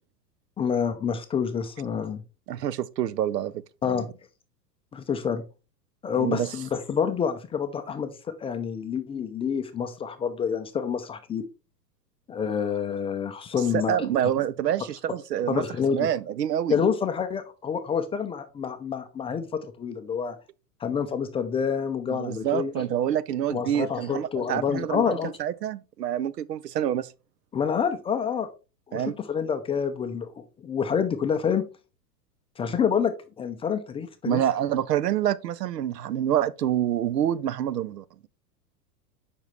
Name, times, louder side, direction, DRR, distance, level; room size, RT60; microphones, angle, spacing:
voice 1, 0.6-2.2 3.8-4.1 4.9-5.4 6.0-11.4 12.3-14.1 15.5-16.1 16.7-20.4 20.8-22.7 23.5-25.3 27.5-28.5 28.9-31.6 32.6-34.4, left 7 dB, 10° left, 0.4 m, -28 dB
voice 2, 2.5-4.1 6.2-6.5 13.7-15.6 15.9-16.8 22.1-27.1 28.9-29.1 34.3-38.3, right 10 dB, 85° right, 0.6 m, -27 dB
7.2 x 5.4 x 3.2 m
hypercardioid pair, 100°, 48 cm